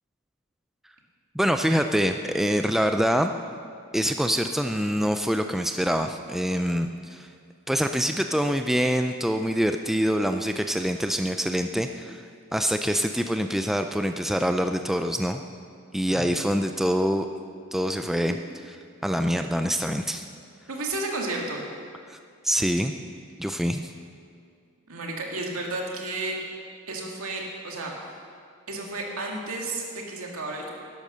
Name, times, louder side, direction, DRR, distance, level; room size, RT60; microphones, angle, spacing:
voice 1, 1.4-3.3 3.9-7.3 7.7-12.2 12.5-15.4 15.9-17.3 17.7-18.4 18.7-18.8 19.0-20.2 22.1-22.2 22.4-22.9 23.4-23.9, equal, ahead, 6 dB, 0.3 m, -25 dB
voice 2, 20.7-21.7 24.9-26.4 26.9-27.9 28.7-30.7, right 2 dB, 80° right, -1 dB, 2.3 m, -32 dB
12.0 x 10.5 x 6.3 m, 2.2 s
head